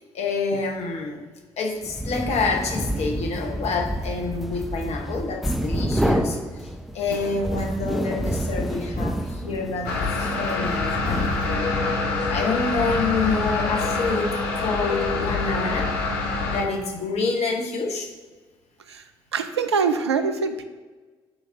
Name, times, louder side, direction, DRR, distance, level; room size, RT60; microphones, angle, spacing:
voice 1, 0.1-1.2 1.6-6.4 6.9-11.9 12.3-15.9 16.5-18.1, left 4 dB, 50° left, 2 dB, 1.1 m, -27 dB
sound 1, 1.8-11.8, equal, ahead, 0.6 m, -29 dB
sound 2, 9.9-16.6, left 3 dB, 70° left, 0.8 m, -25 dB
voice 2, 19.3-20.6, right 5 dB, 85° right, 8 dB, 0.4 m, -24 dB
9.8 x 4.1 x 2.7 m, 1.3 s
figure-of-eight pair, 45°, 14 cm